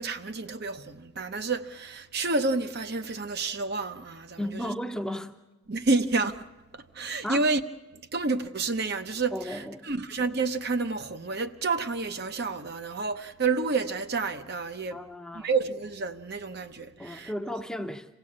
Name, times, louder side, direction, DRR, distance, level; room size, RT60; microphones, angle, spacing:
voice 1, 0.0-4.7 5.7-7.6 7.9-15.0 15.3-17.3, right 3 dB, 50° right, 0.8 m, -30 dB
voice 2, 4.4-5.3 7.2-7.4 9.3-9.9 14.9-15.5 17.0-18.1, equal, 5° left, 0.8 m, -34 dB
26.5 x 16.5 x 8.6 m
head